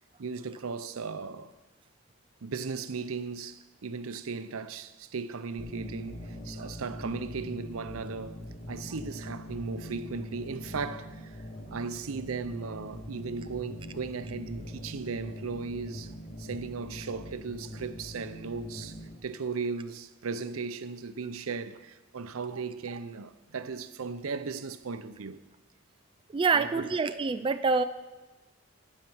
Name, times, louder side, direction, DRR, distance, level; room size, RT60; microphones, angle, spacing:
voice 1, 0.2-1.5 2.4-11.4 11.7-16.1 16.4-25.4 26.5-26.9, right 4 dB, 80° right, 0.6 m, -37 dB
sound 1, 5.6-19.1, equal, 35° left, 1.9 m, -42 dB
voice 2, 26.3-27.8, right 4 dB, 25° right, 0.3 m, -26 dB
12.0 x 9.1 x 5.6 m
head